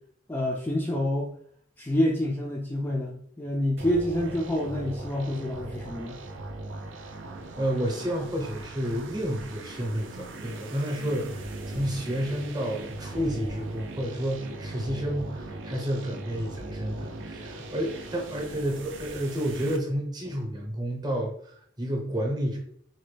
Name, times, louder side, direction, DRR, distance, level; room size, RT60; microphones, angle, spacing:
voice 1, 0.3-1.3 1.8-6.2, left 1 dB, 10° left, -1 dB, 0.3 m, -27 dB
sound 1, 3.8-19.8, right 2 dB, 85° right, 0.5 m, -39 dB
voice 2, 7.6-22.6, equal, 20° right, 1 dB, 0.7 m, -30 dB
3.8 x 2.2 x 3.3 m, 0.63 s
head